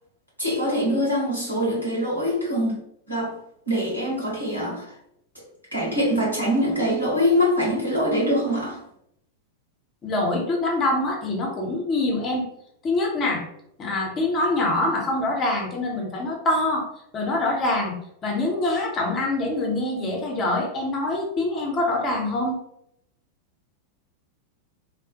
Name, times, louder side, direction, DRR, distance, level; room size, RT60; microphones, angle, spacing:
voice 1, 0.4-2.8 3.1-3.4 3.7-4.9 5.7-8.8, equal, 85° right, -5 dB, 1.3 m, -23 dB
voice 2, 10.0-12.4 12.8-13.5 13.8-16.9 17.1-18.0 18.2-22.6, left 2 dB, 30° left, -1 dB, 0.8 m, -24 dB
3.1 x 2.0 x 2.9 m, 0.75 s
figure-of-eight pair, 90°, 0 cm